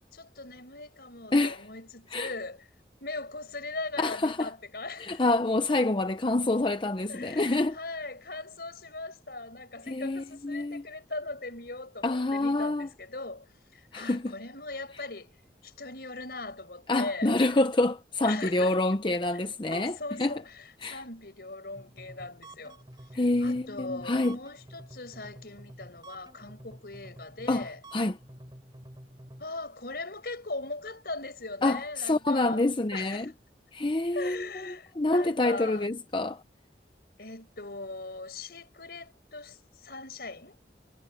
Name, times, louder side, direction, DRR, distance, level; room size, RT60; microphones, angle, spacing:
voice 1, 0.1-2.7 3.0-5.2 7.1-17.3 18.2-18.8 19.7-22.8 23.1-27.8 29.4-32.7 32.9-33.3 34.1-35.9 37.2-40.6, left 3 dB, 60° left, 5.5 m, -40 dB
voice 2, 1.3-1.6 2.1-2.3 4.0-4.5 5.0-7.8 9.9-10.8 12.0-12.9 13.9-14.3 16.9-20.3 20.8-21.0 23.1-24.4 27.5-27.7 27.9-28.2 31.6-33.3 33.7-36.4, left 2 dB, 30° left, 0.7 m, -27 dB
sound 1, 21.8-29.5, right 1 dB, 25° right, 4.0 m, -50 dB
head